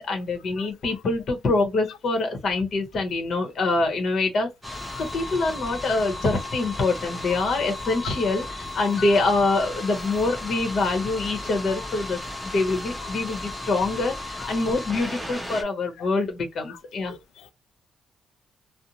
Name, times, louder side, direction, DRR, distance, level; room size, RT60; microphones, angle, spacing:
voice 1, 0.0-4.5 5.0-12.2 12.5-17.1, left 3 dB, 55° left, 0.9 m, -25 dB
voice 2, 0.6-0.9 4.9-5.0 11.7-11.9 14.4-14.6 16.0-16.1 16.7-16.8 17.1-17.5, left 9 dB, 85° left, 0.5 m, -44 dB
sound 1, 4.6-15.6, left 1 dB, ahead, 0.8 m, -35 dB
2.6 x 2.0 x 2.8 m
cardioid pair, 90°, 0 cm